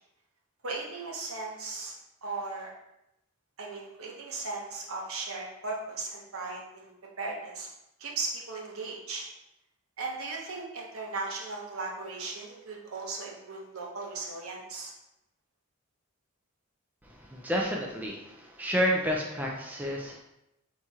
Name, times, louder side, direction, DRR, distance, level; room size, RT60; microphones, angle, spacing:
voice 1, 0.6-1.9 2.2-2.7 3.6-7.7 8.0-9.3 10.0-14.9, right 3 dB, 65° right, -1 dB, 0.9 m, -37 dB
voice 2, 17.0-20.2, equal, 10° right, -1 dB, 0.4 m, -30 dB
4.2 x 2.9 x 3.6 m, 0.87 s
head